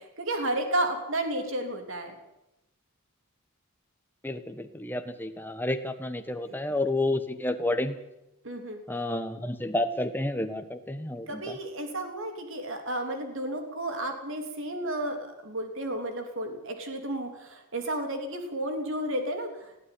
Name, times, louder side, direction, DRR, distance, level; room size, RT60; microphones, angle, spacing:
voice 1, 0.0-2.1 8.4-8.8 11.3-19.8, right 1 dB, 60° right, 5 dB, 3.2 m, -32 dB
voice 2, 4.2-8.0 8.9-11.6, left 1 dB, 10° left, 7 dB, 1.3 m, -30 dB
19.0 x 15.0 x 10.0 m, 0.90 s
head